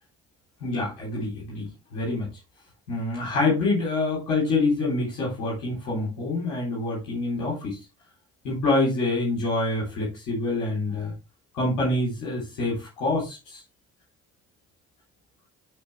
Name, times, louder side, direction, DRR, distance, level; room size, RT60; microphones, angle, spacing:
voice 1, 0.6-2.3 2.9-7.8 8.4-11.1 11.5-13.6, left 2 dB, 80° left, -5 dB, 3.7 m, -26 dB
12.0 x 4.4 x 3.3 m, 0.25 s
hypercardioid pair, 45°, 38 cm